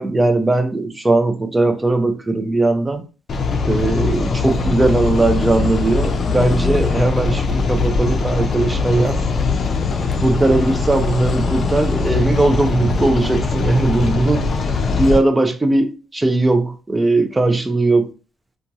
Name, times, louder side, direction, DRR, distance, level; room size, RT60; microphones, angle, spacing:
voice 1, 0.0-3.0 3.7-9.2 10.2-14.5 15.0-18.1, right 2 dB, 15° right, 0.4 m, -18 dB
sound 1, 3.3-15.2, left 4 dB, 50° left, 0.5 m, -21 dB
2.8 x 2.3 x 2.6 m
cardioid pair, 90°, 0 cm